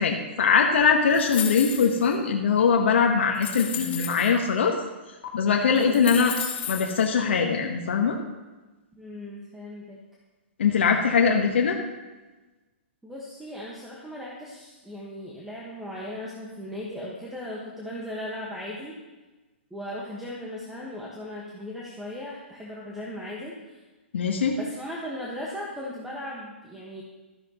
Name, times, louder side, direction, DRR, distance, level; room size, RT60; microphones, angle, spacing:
voice 1, 0.0-4.7 5.3-6.3 6.7-8.2 10.6-11.8 24.1-24.6, left 6 dB, 75° left, 1 dB, 1.1 m, -22 dB
sound 1, 1.1-2.1 2.8-2.9 3.3-4.3 5.2-5.3 5.7-7.0, left 8 dB, 55° left, 2.3 m, -34 dB
voice 2, 5.7-6.1 9.0-10.0 11.1-11.4 13.0-19.0 19.7-23.8 24.6-27.0, left 1 dB, 5° right, -4 dB, 1.4 m, -37 dB
13.0 x 10.5 x 3.0 m, 1.2 s
hypercardioid pair, 140°, 6 cm